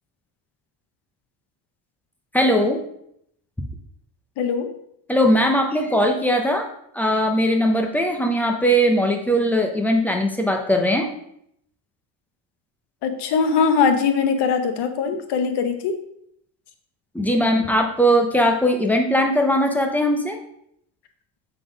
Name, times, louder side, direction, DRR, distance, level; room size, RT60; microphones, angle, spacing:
voice 1, 2.3-2.8 5.1-6.7 6.9-11.1 17.1-20.4, equal, 5° left, 3 dB, 0.5 m, -19 dB
voice 2, 4.4-4.7 13.0-16.0, left 5 dB, 55° left, 7 dB, 1.0 m, -21 dB
6.9 x 3.9 x 5.0 m, 0.72 s
cardioid pair, 165°, 49 cm